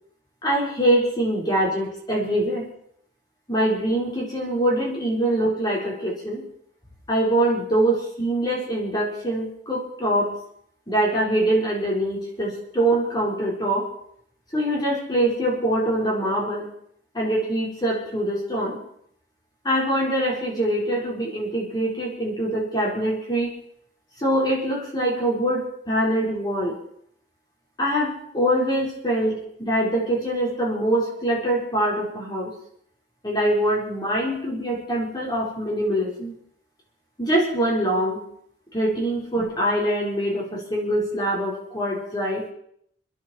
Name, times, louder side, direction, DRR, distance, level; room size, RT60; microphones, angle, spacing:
voice 1, 0.4-2.7 3.5-6.4 7.1-10.3 10.9-13.9 14.5-16.7 17.1-18.8 19.6-23.5 24.2-26.8 27.8-32.5 33.2-36.4 37.2-38.2 38.7-42.5, right 1 dB, 25° left, -3 dB, 4.5 m, -24 dB
28.5 x 10.5 x 4.4 m, 0.69 s
head